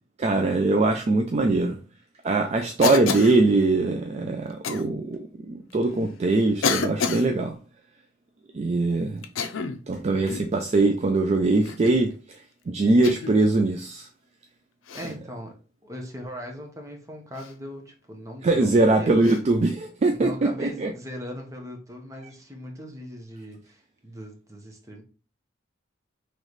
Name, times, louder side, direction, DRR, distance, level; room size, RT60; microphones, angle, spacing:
voice 1, 0.2-1.8 2.2-5.2 5.5-7.6 8.5-9.2 9.9-12.1 12.7-14.1 18.4-20.3 20.6-20.9, right 2 dB, 35° right, 0.4 m, -22 dB
Cough, 2.8-3.4 4.6-4.8 5.7-5.8 6.6-7.3 9.2-9.8 10.3-10.5 11.6-12.0 13.0-13.4 14.9-15.1 17.3-17.5 19.2-19.4, left 5 dB, 85° left, 0.5 m, -28 dB
voice 2, 14.9-15.6 15.8-19.2 20.1-25.0, equal, 15° right, 0.9 m, -39 dB
3.1 x 3.1 x 3.9 m
head